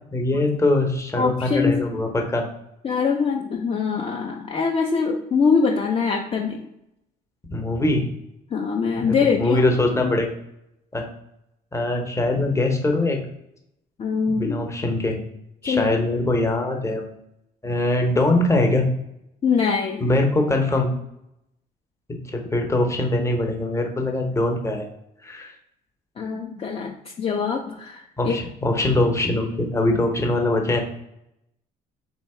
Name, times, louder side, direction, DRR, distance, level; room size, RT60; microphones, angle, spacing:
voice 1, 0.1-2.4 7.5-8.1 9.0-10.3 10.9-11.1 11.7-13.2 14.3-15.2 15.6-17.1 17.6-18.9 20.0-20.9 22.1-24.9 25.2-25.5 28.2-30.8, left 2 dB, 15° left, 2 dB, 0.9 m, -22 dB
voice 2, 1.2-1.8 2.8-6.6 8.5-9.6 10.0-10.1 14.0-14.6 15.6-15.9 19.4-20.1 26.2-28.3, left 5 dB, 35° left, 0 dB, 0.6 m, -23 dB
3.6 x 2.9 x 4.3 m, 0.83 s
cardioid pair, 110°, 17 cm